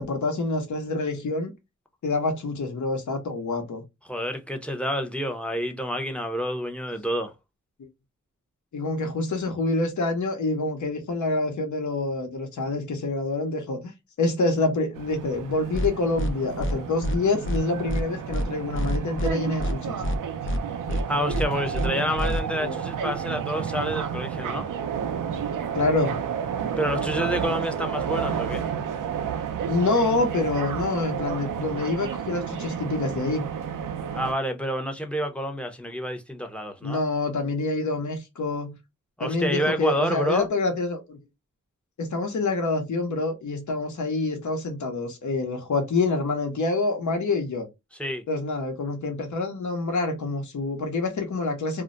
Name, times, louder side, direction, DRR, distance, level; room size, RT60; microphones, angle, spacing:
voice 1, 0.0-1.5 2.0-3.8 8.7-13.9 14.2-20.0 22.6-22.8 25.7-26.2 29.7-33.4 36.8-38.8 39.2-41.2 42.0-47.7 48.3-51.8, left 3 dB, 70° left, 0.9 m, -27 dB
voice 2, 4.1-7.3 21.1-24.7 26.8-28.6 34.1-37.0 39.2-40.5 48.0-48.2, equal, 5° left, 0.6 m, -28 dB
sound 1, 14.9-34.3, right 8 dB, 85° right, 0.5 m, -31 dB
sound 2, 15.7-15.9 16.2-16.3 16.6-16.7 17.0-17.2 17.4-17.6 17.9-18.0 18.3-18.4 18.7-19.3 19.6-19.7 20.0-20.2 20.4-20.6 20.9-21.0 21.3-21.4 21.7-21.9 22.2-22.4, equal, 40° left, 0.6 m, -26 dB
2.4 x 2.1 x 3.7 m
wide cardioid pair, 80°, 31 cm